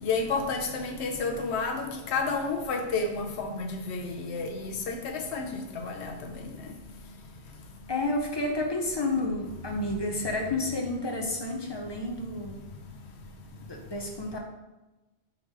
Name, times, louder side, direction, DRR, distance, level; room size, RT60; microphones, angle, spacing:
voice 1, 0.0-5.5 5.7-6.1, left 4 dB, 80° left, 3 dB, 0.9 m, -30 dB
voice 2, 7.9-12.6 13.6-14.4, left 2 dB, 40° left, 1 dB, 0.4 m, -30 dB
3.8 x 2.9 x 4.5 m, 1.1 s
omnidirectional pair, 1.1 m